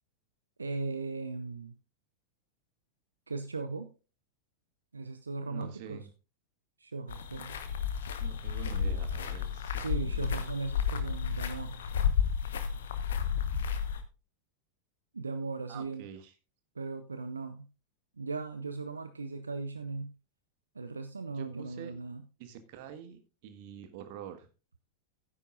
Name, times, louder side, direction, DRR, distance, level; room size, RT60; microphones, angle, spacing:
voice 1, 0.6-1.8 3.3-3.9 4.9-6.1 6.8-7.6 9.7-11.8 15.1-16.0 16.8-17.7 18.2-20.1 20.7-22.2, right 3 dB, 75° right, 10 dB, 0.6 m, -38 dB
voice 2, 5.5-6.1 8.2-10.5 15.7-16.3 21.3-21.9 22.4-24.5, right 9 dB, 50° right, 9 dB, 1.5 m, -47 dB
sound 1, 7.1-14.0, left 7 dB, 60° left, 1.1 m, -32 dB
12.5 x 9.9 x 2.5 m, 0.32 s
figure-of-eight pair, 90°, 0 cm